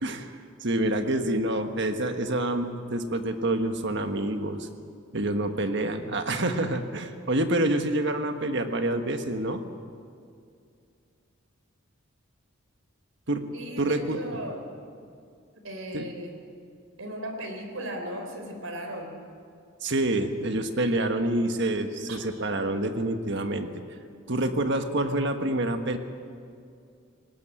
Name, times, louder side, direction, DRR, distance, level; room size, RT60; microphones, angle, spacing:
voice 1, 0.0-0.3 0.6-4.7 5.1-9.6 13.3-14.2 15.9-16.1 19.8-23.7 24.3-26.0, right 1 dB, 55° right, 7 dB, 1.4 m, -27 dB
voice 2, 13.5-14.6 15.6-16.3 17.0-19.2 22.1-22.2, equal, 75° right, 4 dB, 3.8 m, -36 dB
19.5 x 18.5 x 9.1 m, 2.3 s
head